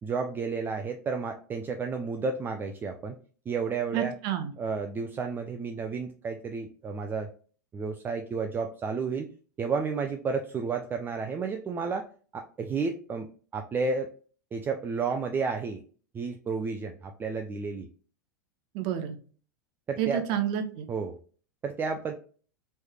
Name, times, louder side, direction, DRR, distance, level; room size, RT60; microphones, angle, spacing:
voice 1, 0.0-3.2 3.5-4.2 4.6-7.3 7.7-9.3 9.6-12.1 12.3-14.1 14.5-15.8 16.1-17.9 19.9-20.4 20.9-21.2 21.6-22.1, right 4 dB, 20° right, 5 dB, 0.4 m, -31 dB
voice 2, 3.9-4.5 18.7-19.2 20.0-20.9, right 10 dB, 50° right, 7 dB, 0.7 m, -29 dB
3.2 x 3.1 x 2.2 m, 0.41 s
hypercardioid pair, 105°, 11 cm